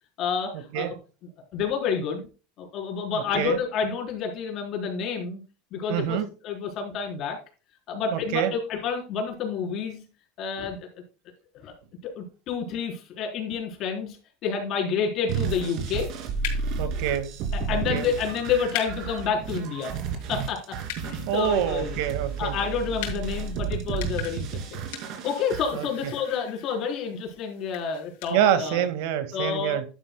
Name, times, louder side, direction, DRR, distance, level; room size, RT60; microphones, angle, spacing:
voice 1, 0.2-0.9 1.5-2.3 2.6-5.4 5.7-6.2 6.4-7.4 7.9-10.0 10.4-10.8 11.6-11.7 12.0-14.2 14.4-16.1 17.5-19.9 20.3-20.6 21.0-22.0 22.4-24.9 25.2-28.8 29.3-29.8, left 6 dB, 45° left, 4.0 m, -29 dB
voice 2, 5.9-6.3 8.1-8.5 16.8-17.3 17.7-18.1 21.3-22.6 25.7-25.9 28.3-29.8, right 10 dB, 70° right, 1.9 m, -26 dB
sound 1, 15.3-25.6, right 5 dB, 50° right, 2.7 m, -32 dB
sound 2, 15.8-28.4, left 10 dB, 75° left, 3.2 m, -42 dB
11.0 x 10.5 x 2.3 m
supercardioid pair, 145°, 0 cm